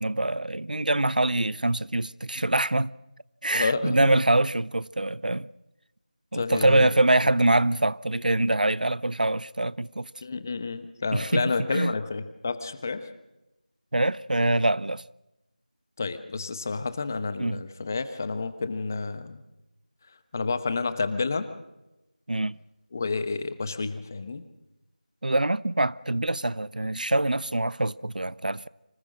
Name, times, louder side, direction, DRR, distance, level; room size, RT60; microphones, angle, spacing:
voice 1, 0.0-2.9 3.4-5.5 6.3-10.1 11.1-11.9 13.9-15.0 17.4-17.7 22.3-22.6 25.2-28.7, right 2 dB, 70° right, 0.7 m, -24 dB
voice 2, 3.5-4.2 6.3-6.9 10.2-13.1 16.0-19.4 20.3-21.5 22.9-24.4, left 4 dB, 20° left, 1.0 m, -30 dB
25.5 x 18.0 x 6.3 m
figure-of-eight pair, 170°, 5 cm